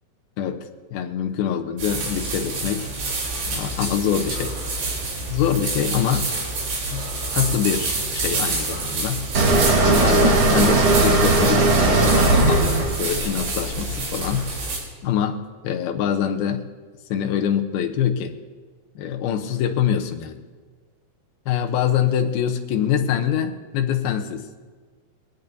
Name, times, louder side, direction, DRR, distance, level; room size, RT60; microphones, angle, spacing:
voice 1, 0.4-2.9 3.5-4.5 5.3-6.3 6.9-7.0 7.3-9.2 9.8-14.5 15.0-16.7 17.1-18.3 19.0-20.4 21.5-24.5, left 9 dB, 75° left, 6 dB, 2.6 m, -24 dB
sound 1, 1.8-14.8, right 3 dB, 85° right, 5.9 m, -28 dB
sound 2, 9.3-14.3, right 2 dB, 55° right, 1.5 m, -18 dB
21.5 x 17.5 x 2.7 m, 1.4 s
omnidirectional pair, 4.8 m